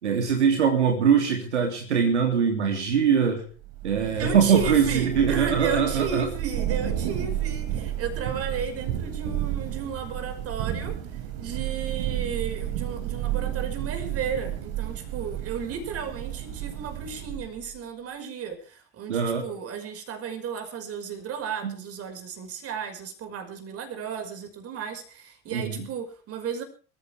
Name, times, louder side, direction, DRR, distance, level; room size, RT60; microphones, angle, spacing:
voice 1, 0.0-3.4 3.8-6.3 19.1-19.4 21.6-21.7 25.5-25.9, right 7 dB, 75° right, 3 dB, 3.1 m, -22 dB
Thunder / Rain, 3.6-17.7, right 11 dB, 60° right, 3.7 m, -32 dB
voice 2, 4.1-26.6, right 6 dB, 40° right, 7 dB, 5.7 m, -34 dB
26.0 x 15.0 x 3.5 m, 0.37 s
figure-of-eight pair, 70°, 35 cm